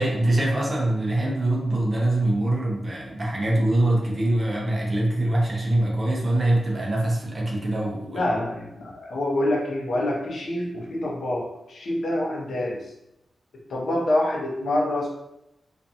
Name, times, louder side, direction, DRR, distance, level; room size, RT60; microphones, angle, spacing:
voice 1, 0.0-8.3, right 1 dB, 25° right, -3 dB, 0.5 m, -23 dB
voice 2, 8.1-12.8 13.7-15.1, left 1 dB, 70° left, -3 dB, 0.6 m, -26 dB
2.4 x 2.3 x 2.7 m, 0.86 s
wide cardioid pair, 165°, 0 cm